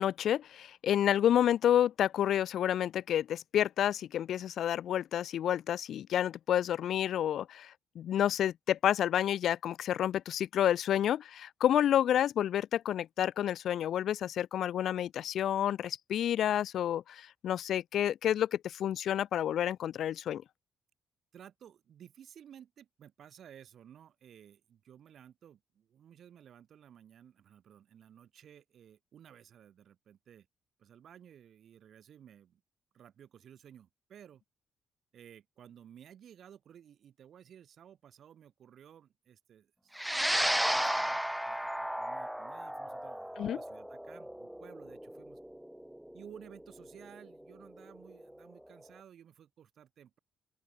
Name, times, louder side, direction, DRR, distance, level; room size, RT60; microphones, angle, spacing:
voice 1, 0.0-20.4 43.4-43.6, left 10 dB, 70° left, 0.8 m, -29 dB
voice 2, 21.3-30.5 30.8-32.6 32.9-34.4 35.1-45.4 46.1-50.2, right 9 dB, 65° right, 5.7 m, -55 dB
sound 1, 40.0-48.5, equal, 5° right, 0.8 m, -34 dB
open air
cardioid pair, 90°, 0 cm